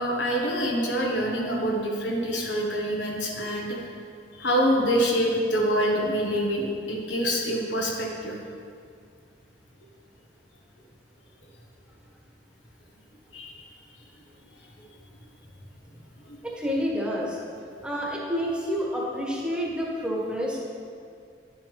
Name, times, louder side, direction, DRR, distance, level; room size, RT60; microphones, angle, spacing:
voice 1, 0.0-3.9 4.3-8.4 13.3-13.6 16.3-16.4, equal, 80° left, -1 dB, 1.3 m, -26 dB
voice 2, 16.4-17.4 17.8-20.6, equal, 5° right, -4 dB, 1.2 m, -28 dB
10.5 x 6.8 x 3.4 m, 2.3 s
head